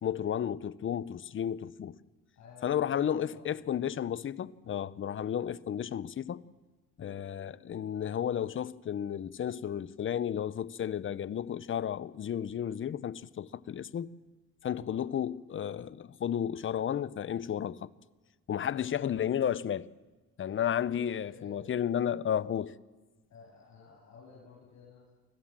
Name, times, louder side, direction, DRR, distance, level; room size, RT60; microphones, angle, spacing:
voice 1, 0.0-2.0 2.6-6.4 7.0-14.1 14.6-17.9 18.5-19.9 20.4-22.7, left 9 dB, 40° left, 0.6 m, -33 dB
voice 2, 2.3-3.8 14.8-15.0 18.6-18.9 20.4-20.5 20.8-21.7 23.3-25.1, left 5 dB, 65° left, 7.4 m, -54 dB
24.5 x 16.5 x 7.4 m
cardioid pair, 90°, 30 cm